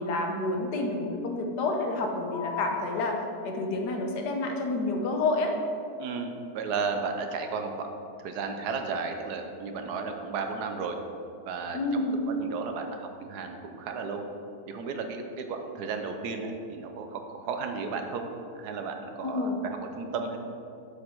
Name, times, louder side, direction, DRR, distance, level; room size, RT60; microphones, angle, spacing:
voice 1, 0.0-5.5 11.7-12.2 19.2-19.6, left 2 dB, 90° left, 3 dB, 1.5 m, -29 dB
sound 1, 2.3-3.7 7.4-7.7, left 3 dB, 50° left, 0.9 m, -37 dB
voice 2, 6.0-7.9 8.2-11.0 11.5-12.0 12.4-14.2 14.7-20.4, right 4 dB, 75° right, 5 dB, 1.2 m, -34 dB
7.3 x 6.5 x 4.5 m, 2.5 s
omnidirectional pair, 1.7 m